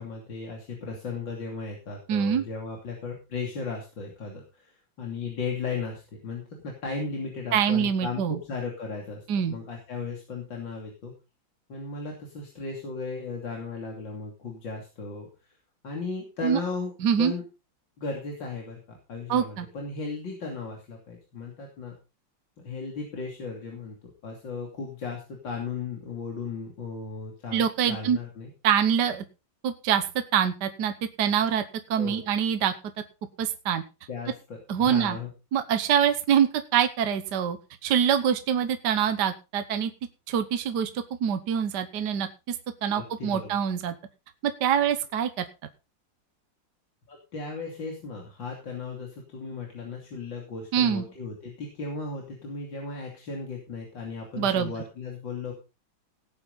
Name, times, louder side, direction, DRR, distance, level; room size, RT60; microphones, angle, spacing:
voice 1, 0.0-11.1 11.7-15.3 15.8-16.9 17.2-17.4 18.0-21.9 22.6-28.5 32.0-32.2 34.1-35.3 42.9-43.6 47.1-55.5, left 4 dB, 75° left, 0 dB, 3.5 m, -36 dB
voice 2, 2.1-2.4 7.5-8.4 9.3-9.5 16.4-16.6 17.0-17.3 19.3-19.7 27.5-28.2 28.6-29.2 29.6-30.0 30.3-31.6 31.9-32.7 33.4-33.8 34.7-35.2 35.5-37.6 37.8-39.9 40.3-40.9 41.2-42.6 42.8-43.9 44.4-45.4 50.7-51.1 54.4-54.7, right 8 dB, 65° right, 9 dB, 1.6 m, -25 dB
18.0 x 8.7 x 4.0 m, 0.30 s
omnidirectional pair, 2.1 m